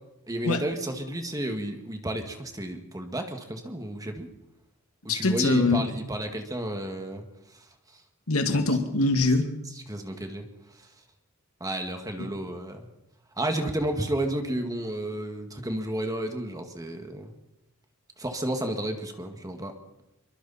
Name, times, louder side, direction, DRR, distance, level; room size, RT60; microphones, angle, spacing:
voice 1, 0.3-4.3 5.0-7.2 9.9-10.4 11.6-12.9 13.4-17.3 18.2-19.7, right 1 dB, 15° right, 5 dB, 2.1 m, -32 dB
voice 2, 5.1-5.8 8.3-9.5 12.2-12.3, left 2 dB, 85° left, 6 dB, 2.3 m, -23 dB
26.0 x 23.5 x 4.4 m, 0.89 s
head